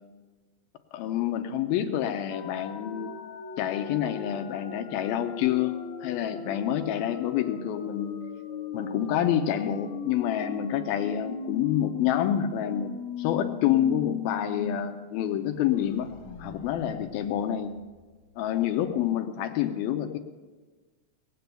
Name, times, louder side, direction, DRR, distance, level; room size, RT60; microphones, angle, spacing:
voice 1, 0.9-3.1 3.6-8.2 8.7-16.1 16.4-17.8 18.4-20.2, left 10 dB, 80° left, 6 dB, 2.4 m, -28 dB
sound 1, 2.3-14.8 15.1-15.2 15.6-18.3, left 7 dB, 60° left, 2.2 m, -38 dB
19.5 x 8.4 x 6.9 m, 1.3 s
omnidirectional pair, 4.5 m